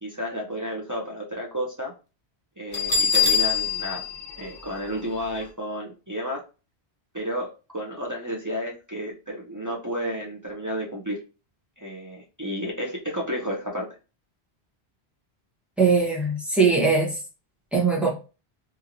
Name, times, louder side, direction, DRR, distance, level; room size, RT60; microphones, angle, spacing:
voice 1, 0.0-1.9 2.6-4.0 4.4-6.4 7.1-11.2 11.8-13.9, equal, 30° right, 0.3 m, -32 dB
Bell, 2.7-5.4, left 6 dB, 45° left, 0.8 m, -25 dB
voice 2, 15.8-17.1 17.7-18.1, right 4 dB, ahead, 0.7 m, -20 dB
2.8 x 2.8 x 2.5 m
omnidirectional pair, 1.1 m